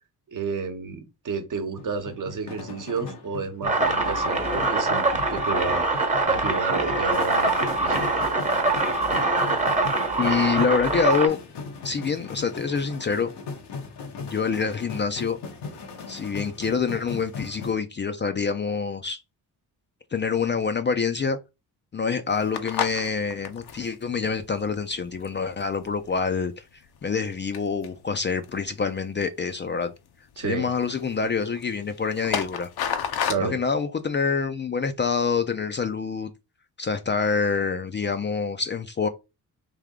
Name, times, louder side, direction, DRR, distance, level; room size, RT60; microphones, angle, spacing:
voice 1, 0.3-5.9 6.2-8.1 30.4-30.7 33.2-33.6, right 5 dB, 50° right, 1.0 m, -31 dB
sound 1, 1.8-17.7, left 4 dB, 85° left, 1.1 m, -38 dB
sound 2, 3.6-11.3, right 2 dB, 20° right, 0.9 m, -23 dB
voice 2, 10.2-11.4 11.8-13.3 14.2-15.4 16.1-19.2 20.1-21.4 21.9-26.6 27.0-29.9 30.4-32.7 33.4-36.3 36.8-39.1, left 5 dB, 30° left, 0.4 m, -26 dB
sound 3, 22.3-26.3 26.7-27.3 27.5-28.9 29.5-30.1 30.3-30.5 30.8-33.3, left 8 dB, 65° left, 0.8 m, -33 dB
3.5 x 2.7 x 3.6 m
cardioid pair, 80°, 40 cm